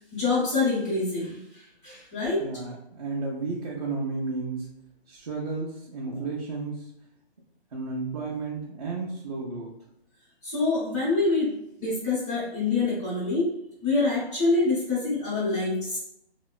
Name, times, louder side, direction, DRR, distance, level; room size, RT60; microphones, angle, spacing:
voice 1, 0.1-1.4 1.8-2.4 6.0-6.2 10.4-11.5 11.8-13.5 13.8-16.0, left 3 dB, 20° left, -15 dB, 0.9 m, -25 dB
voice 2, 2.4-4.7 5.1-6.8 7.7-9.7, right 3 dB, 40° right, -5 dB, 0.4 m, -32 dB
2.7 x 2.1 x 2.3 m, 0.79 s
hypercardioid pair, 165°, 32 cm